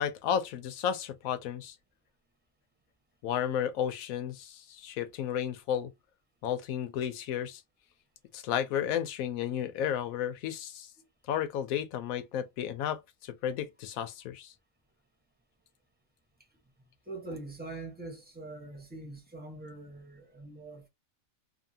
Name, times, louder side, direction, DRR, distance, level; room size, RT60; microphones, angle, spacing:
voice 1, 0.0-1.7 3.2-5.9 6.4-7.6 8.3-10.9 11.3-14.5, left 9 dB, 80° left, 1.0 m, -33 dB
voice 2, 17.1-20.9, right 2 dB, 10° right, 0.9 m, -43 dB
2.7 x 2.6 x 2.6 m
omnidirectional pair, 1.4 m